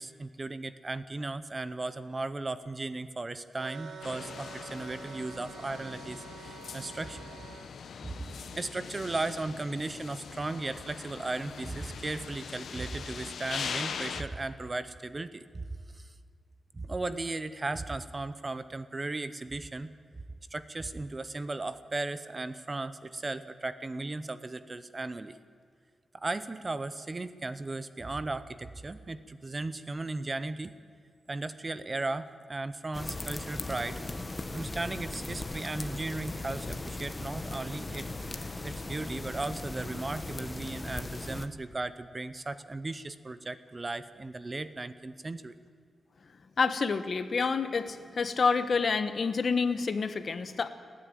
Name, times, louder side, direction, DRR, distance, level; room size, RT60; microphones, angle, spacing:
voice 1, 0.0-7.3 8.0-8.2 8.6-15.7 15.9-16.1 16.7-19.9 20.5-25.4 26.1-30.7 31.3-34.0 34.5-45.6, right 2 dB, 25° right, 13 dB, 0.7 m, -36 dB
sound 1, 3.6-7.7, right 7 dB, 90° right, 1.7 m, -47 dB
sound 2, 4.0-14.2, left 6 dB, 70° left, 1.1 m, -41 dB
sound 3, 32.9-41.5, left 2 dB, 20° left, 1.0 m, -38 dB
voice 2, 46.6-50.7, left 5 dB, 45° left, 11 dB, 1.2 m, -28 dB
29.5 x 10.0 x 9.1 m, 2.2 s
wide cardioid pair, 145°, 0 cm